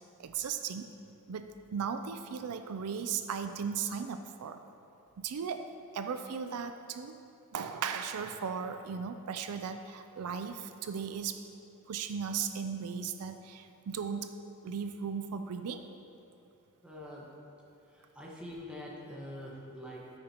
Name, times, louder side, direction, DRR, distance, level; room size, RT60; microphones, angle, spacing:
voice 1, 0.2-0.9 1.3-4.6 5.2-5.7 5.9-7.2 7.5-11.4 11.9-14.3 14.6-15.8, right 6 dB, 80° right, 8 dB, 0.4 m, -36 dB
voice 2, 16.8-17.3 17.9-20.2, left 1 dB, 5° right, -5 dB, 1.3 m, -45 dB
13.5 x 6.5 x 2.9 m, 2.8 s
head